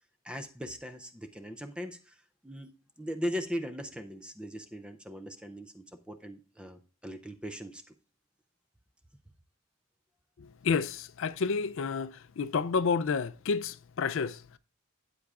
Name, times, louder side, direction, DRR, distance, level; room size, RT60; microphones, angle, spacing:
voice 1, 0.2-2.2 2.4-2.7 3.0-7.9, equal, 5° right, 0.4 m, -39 dB
voice 2, 10.6-14.4, left 5 dB, 60° left, 0.4 m, -30 dB
13.0 x 8.5 x 2.4 m
head